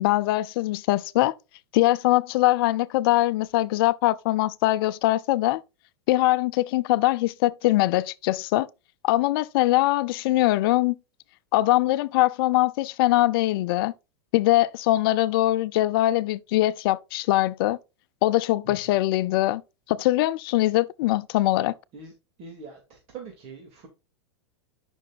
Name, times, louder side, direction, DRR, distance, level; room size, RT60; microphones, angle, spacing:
voice 1, 0.0-1.3 1.7-5.6 6.1-8.7 9.0-11.0 11.5-13.9 14.3-17.8 18.2-19.6 19.9-21.7, left 17 dB, 60° left, 0.6 m, -22 dB
voice 2, 22.4-23.9, right 5 dB, 45° right, 2.6 m, -42 dB
9.8 x 6.2 x 2.5 m
hypercardioid pair, 110°, 14 cm